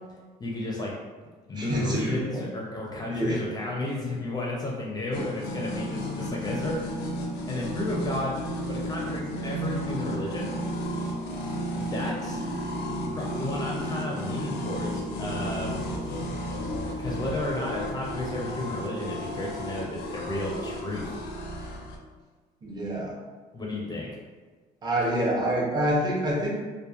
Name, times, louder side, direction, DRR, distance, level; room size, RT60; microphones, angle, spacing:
voice 1, 0.4-0.9 1.5-7.1 7.4-8.4 8.7-10.5 11.4-12.4 13.1-16.2 17.0-21.1 23.5-24.1, left 2 dB, 25° left, -3 dB, 0.5 m, -33 dB
voice 2, 1.5-2.5 3.1-3.4 22.6-23.2 24.8-26.5, right 1 dB, 25° right, -4 dB, 0.7 m, -27 dB
sound 1, 5.1-22.0, equal, 90° left, 0.5 m, -33 dB
2.8 x 2.1 x 2.3 m, 1.4 s
cardioid pair, 110°, 17 cm